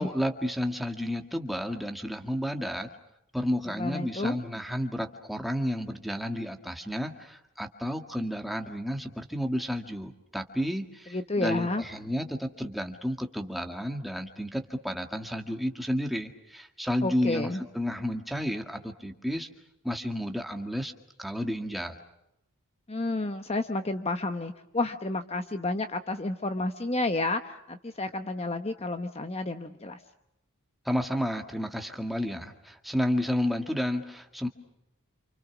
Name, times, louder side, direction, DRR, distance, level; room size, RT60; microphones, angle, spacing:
voice 1, 0.0-2.9 3.3-19.5 19.8-20.9 21.2-22.0 30.9-34.5, equal, ahead, 4 dB, 1.9 m, -31 dB
voice 2, 3.8-4.4 11.1-11.8 17.0-17.6 22.9-30.0, left 2 dB, 30° left, 8 dB, 1.0 m, -30 dB
28.5 x 28.0 x 6.1 m, 0.85 s
head